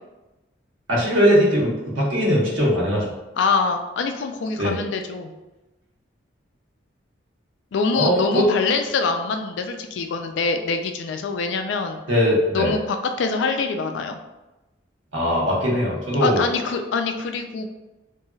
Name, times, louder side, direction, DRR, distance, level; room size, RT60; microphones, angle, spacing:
voice 1, 0.9-3.0 4.6-4.7 7.9-8.5 12.1-12.7 15.1-16.4, equal, 80° right, -4 dB, 1.0 m, -20 dB
voice 2, 3.4-5.3 7.7-12.0 12.5-14.2 16.2-17.7, left 4 dB, 70° left, 6 dB, 0.3 m, -24 dB
3.1 x 2.6 x 2.3 m, 1.0 s
head